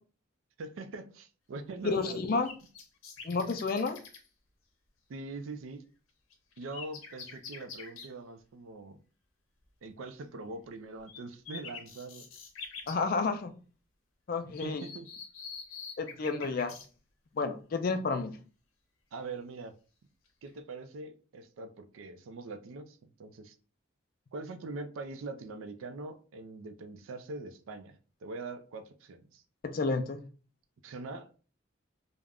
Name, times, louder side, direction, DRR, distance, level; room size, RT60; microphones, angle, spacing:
voice 1, 0.6-2.2 5.1-5.8 6.6-9.0 9.8-12.3 14.6-15.1 19.1-19.7 20.4-23.6 24.3-29.4 30.8-31.4, right 3 dB, 75° right, 0.4 m, -43 dB
voice 2, 1.8-2.5 3.2-4.0 12.9-13.5 14.3-14.8 16.0-16.8 17.4-18.3 29.6-30.2, left 4 dB, 45° left, 0.3 m, -30 dB
sound 1, 1.9-4.3 6.3-8.1 11.1-11.2 11.5-13.0 14.5-16.9 20.3-20.5, left 5 dB, 85° left, 0.6 m, -46 dB
2.3 x 2.0 x 3.4 m
head